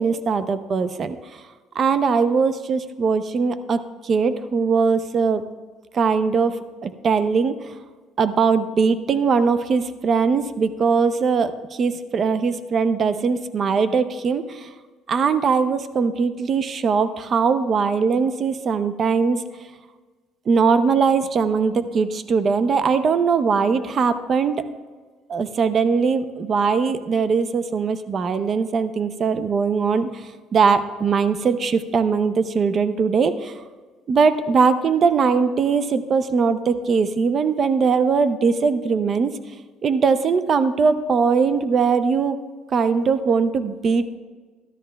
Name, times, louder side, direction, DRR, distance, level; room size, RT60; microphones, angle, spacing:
voice 1, 0.0-1.4 1.7-5.4 5.9-7.7 8.2-14.7 15.1-19.4 20.5-24.6 25.3-33.5 34.1-39.3 39.8-42.4 42.7-44.2, right 5 dB, 40° right, 11 dB, 0.5 m, -20 dB
14.0 x 12.0 x 2.3 m, 1.4 s
cardioid pair, 110°, 0 cm